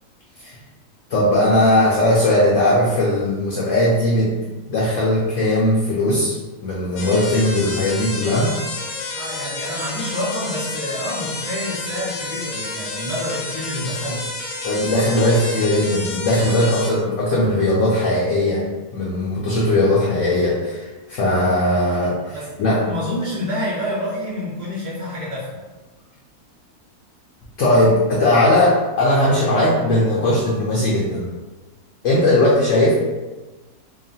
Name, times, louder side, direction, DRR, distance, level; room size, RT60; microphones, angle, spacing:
voice 1, 1.1-4.4 4.7-6.4 6.6-8.7 14.6-18.6 18.9-22.8 27.6-31.3 32.0-32.9, left 1 dB, 65° left, -5 dB, 0.8 m, -18 dB
sound 1, 7.0-16.9, left 2 dB, 85° left, 1.2 m, -30 dB
voice 2, 9.1-14.2 22.3-25.6, left 1 dB, 20° right, -12 dB, 0.5 m, -28 dB
2.8 x 2.4 x 2.6 m, 1.2 s
omnidirectional pair, 1.7 m